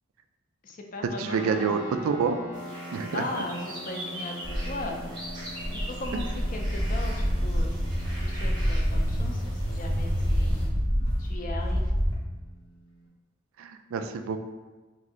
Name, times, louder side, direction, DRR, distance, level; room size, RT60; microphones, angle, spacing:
voice 1, 0.6-1.7 3.1-5.1 5.7-7.8 8.2-10.6 11.2-11.9, left 2 dB, 40° left, 2 dB, 0.4 m, -38 dB
voice 2, 1.2-2.4 2.9-3.2 6.1-6.2 13.6-14.4, right 5 dB, 85° right, 8 dB, 0.3 m, -28 dB
sound 1, 1.3-13.1, right 1 dB, 85° left, 0.7 m, -44 dB
sound 2, 2.5-10.7, equal, 20° right, 0.7 m, -42 dB
Walk footsteps, 4.4-12.1, equal, 20° left, 0.8 m, -27 dB
3.0 x 2.6 x 3.7 m, 1.2 s
head